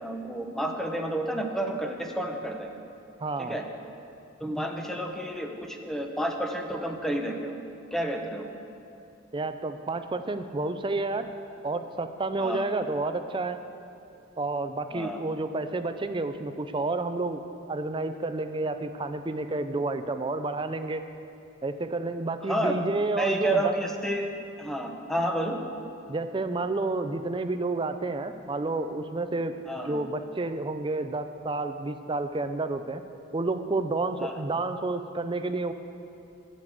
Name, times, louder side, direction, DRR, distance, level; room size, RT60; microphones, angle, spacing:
voice 1, 0.0-2.7 3.4-3.6 4.4-7.6 7.9-8.5 12.4-12.6 14.9-15.2 22.4-22.8 23.2-24.3 24.6-25.6 29.7-30.0 34.2-34.3, right 1 dB, ahead, 3 dB, 0.8 m, -30 dB
voice 2, 3.2-3.6 9.3-11.3 11.6-13.6 14.4-17.4 17.7-21.0 21.6-23.8 26.1-29.5 29.9-33.0 33.3-35.7, right 2 dB, 25° right, 9 dB, 0.5 m, -30 dB
12.0 x 6.7 x 8.0 m, 2.7 s
head